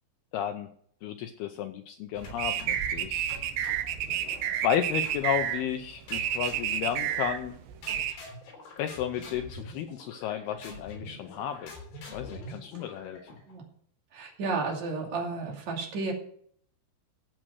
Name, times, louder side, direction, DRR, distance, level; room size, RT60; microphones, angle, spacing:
voice 1, 0.3-0.7 1.0-3.3 4.6-7.5 8.8-11.7 12.1-13.2, left 10 dB, 80° left, 7 dB, 2.3 m, -32 dB
sound 1, 2.2-2.9 3.3-4.5 5.0-5.6 6.1-7.5 7.8-13.5, left 2 dB, 55° left, 5.3 m, -46 dB
sound 2, 2.2-8.1, right 10 dB, 75° right, 3.1 m, -31 dB
voice 2, 14.1-16.1, right 3 dB, 45° right, 0 dB, 3.4 m, -32 dB
14.0 x 7.7 x 6.4 m, 0.62 s
omnidirectional pair, 5.3 m